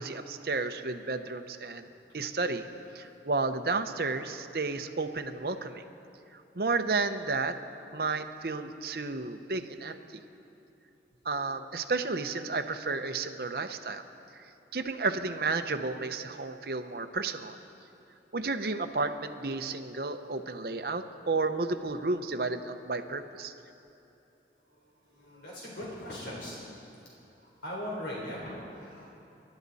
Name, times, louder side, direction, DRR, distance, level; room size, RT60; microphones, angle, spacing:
voice 1, 0.0-1.9 2.1-2.6 2.9-5.8 6.6-7.6 7.9-10.0 11.2-14.0 14.7-17.6 18.3-23.5, right 3 dB, 60° right, 7 dB, 0.8 m, -32 dB
voice 2, 24.7-26.6 27.4-29.1, left 1 dB, 90° left, -4 dB, 3.8 m, -40 dB
27.0 x 12.0 x 4.2 m, 2.9 s
head